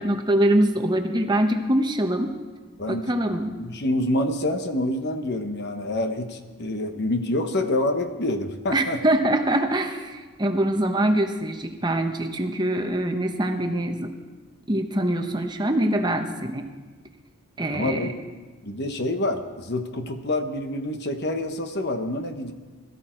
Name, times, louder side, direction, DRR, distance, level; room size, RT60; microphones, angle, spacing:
voice 1, 0.0-2.3 2.9-3.6 8.7-14.1 14.7-16.7 17.6-18.1, right 1 dB, 20° right, 5 dB, 1.0 m, -24 dB
voice 2, 2.8-9.0 17.7-18.1 18.6-22.5, left 1 dB, 50° left, 7 dB, 1.1 m, -27 dB
21.0 x 14.0 x 4.5 m, 1.3 s
head